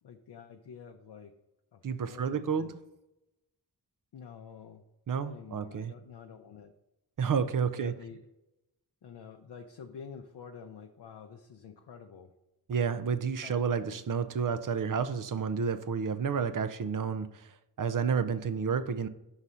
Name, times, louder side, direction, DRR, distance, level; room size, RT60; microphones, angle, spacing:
voice 1, 0.0-1.3 1.7-2.7 4.1-4.8 5.1-6.7 7.7-8.2 9.0-12.3 13.4-13.7, left 6 dB, 75° left, 0.6 m, -48 dB
voice 2, 1.8-2.8 5.1-5.9 7.2-7.9 12.7-17.5 17.8-19.1, right 6 dB, 50° right, 0.5 m, -30 dB
5.5 x 4.1 x 6.1 m
wide cardioid pair, 75°, 42 cm